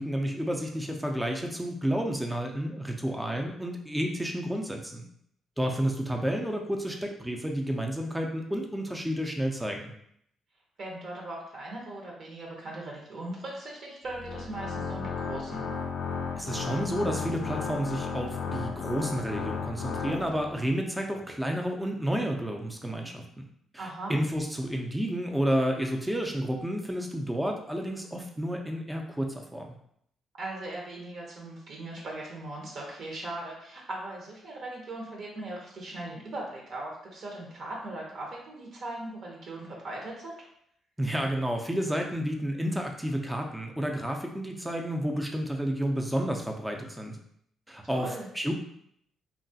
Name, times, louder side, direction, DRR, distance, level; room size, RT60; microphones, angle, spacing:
voice 1, 0.0-5.0 5.6-9.9 16.4-23.5 23.7-29.7 41.0-47.2 47.7-48.5, equal, 5° right, 2 dB, 0.5 m, -31 dB
voice 2, 10.8-15.6 23.8-24.2 30.4-40.3 47.8-48.3, right 2 dB, 60° right, -2 dB, 0.8 m, -39 dB
Organ, 14.0-20.7, left 5 dB, 75° left, 0.4 m, -34 dB
2.9 x 2.3 x 2.7 m, 0.69 s
cardioid pair, 90°, 0 cm